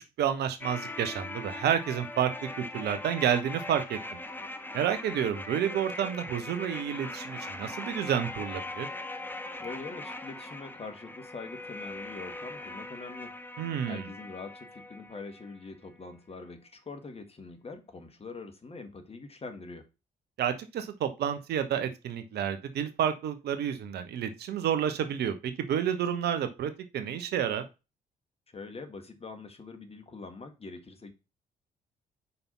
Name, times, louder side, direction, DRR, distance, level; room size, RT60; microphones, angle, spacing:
voice 1, 0.2-2.3 2.6-4.0 4.7-8.9 13.6-14.1 20.4-27.6, right 9 dB, 55° right, 0.9 m, -30 dB
sound 1, 0.6-15.6 15.9-16.0, left 2 dB, 10° left, 0.9 m, -41 dB
voice 2, 9.6-13.3 13.9-19.9 28.5-31.1, left 3 dB, 30° left, 1.6 m, -43 dB
5.2 x 4.1 x 5.6 m
figure-of-eight pair, 40°, 20 cm